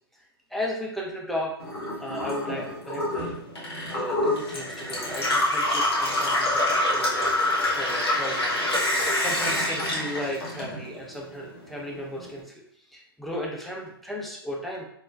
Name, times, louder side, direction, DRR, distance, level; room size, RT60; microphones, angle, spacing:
voice 1, 0.1-1.6 2.0-3.4 3.9-7.3 7.7-8.7 9.2-12.6 12.9-14.8, equal, ahead, -2 dB, 0.4 m, -35 dB
Gurgling / Water tap faucet / Sink (filling or washing), 1.6-11.1 11.4-12.3, left 1 dB, 80° left, 1.2 m, -26 dB
3.3 x 2.1 x 2.4 m, 0.71 s
figure-of-eight pair, 115°, 13 cm